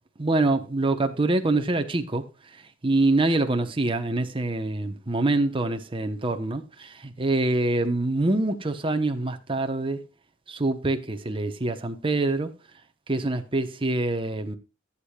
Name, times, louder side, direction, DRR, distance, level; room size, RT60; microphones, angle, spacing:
voice 1, 0.2-2.3 2.8-10.0 10.5-12.5 13.1-14.6, right 2 dB, 25° right, 0.9 m, -25 dB
14.5 x 8.3 x 2.3 m
head